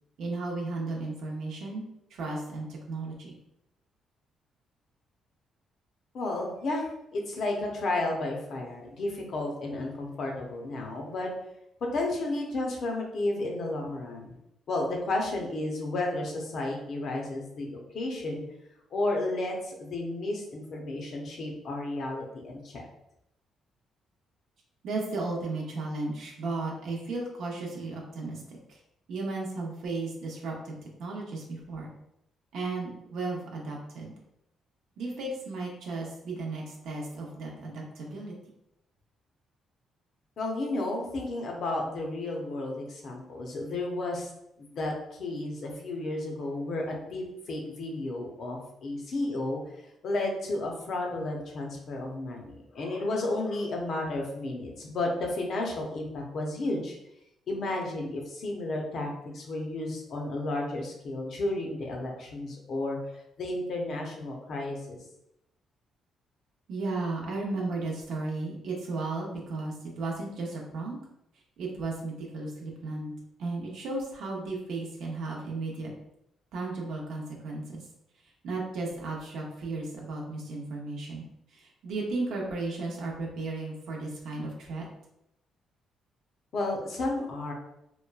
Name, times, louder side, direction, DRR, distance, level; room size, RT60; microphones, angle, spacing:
voice 1, 0.2-1.8 2.1-3.3 24.8-28.8 29.1-30.7 31.0-31.9 32.5-34.2 35.0-38.3 66.7-71.0 71.6-73.1 73.4-75.9 76.5-77.8 78.4-81.2 81.5-84.9, right 3 dB, 80° right, -1 dB, 0.6 m, -34 dB
voice 2, 6.1-11.3 11.9-14.4 14.7-17.7 17.9-18.4 18.9-22.8 40.4-44.3 44.6-49.6 50.0-57.0 57.5-65.0 86.5-87.5, left 2 dB, 60° left, 0 dB, 0.7 m, -32 dB
3.0 x 2.2 x 2.3 m, 0.81 s
cardioid pair, 90°, 0 cm